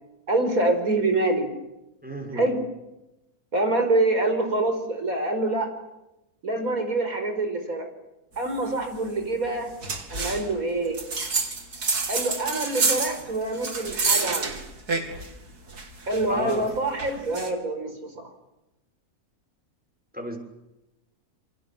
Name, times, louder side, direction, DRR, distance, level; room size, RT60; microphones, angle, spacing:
voice 1, 0.3-1.5 2.3-2.6 3.5-5.7 6.4-7.9 8.4-9.7 10.1-11.0 12.1-14.6 16.1-18.2, right 2 dB, 65° right, 7 dB, 5.3 m, -25 dB
voice 2, 2.0-2.5 16.3-16.7 20.1-20.4, equal, 5° right, 2 dB, 6.0 m, -32 dB
sound 1, 9.8-10.5 10.9-15.3 15.7-17.5, right 4 dB, 90° right, 3.4 m, -28 dB
28.0 x 24.0 x 7.5 m, 0.95 s
omnidirectional pair, 1.6 m